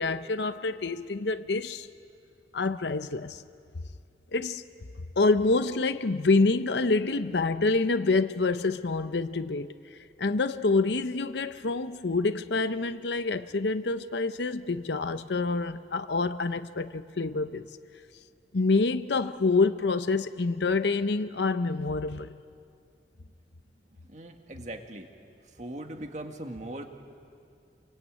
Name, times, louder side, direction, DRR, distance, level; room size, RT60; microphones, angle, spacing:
voice 1, 0.0-1.9 2.5-3.4 4.3-4.6 5.2-17.6 18.5-22.3, left 3 dB, 80° left, 0.7 m, -27 dB
voice 2, 24.0-25.1 25.4-26.9, right 1 dB, 40° right, 1.9 m, -40 dB
28.5 x 23.5 x 8.9 m
head